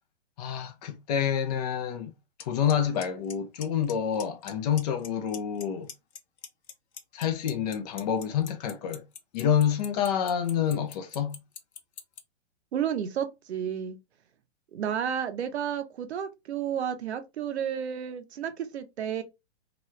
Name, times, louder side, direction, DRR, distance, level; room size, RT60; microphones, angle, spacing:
voice 1, 0.4-2.1 2.5-5.9 7.1-9.0 9.3-11.4, left 8 dB, 40° left, 0.5 m, -28 dB
Clock, 2.4-2.5 2.7-3.0 3.3-3.9 4.2-4.5 4.8-5.6 5.9-12.2, left 8 dB, 75° left, 0.8 m, -40 dB
voice 2, 12.7-14.0 14.7-19.2, right 8 dB, 75° right, 0.8 m, -31 dB
2.9 x 2.3 x 3.0 m
hypercardioid pair, 140°, 33 cm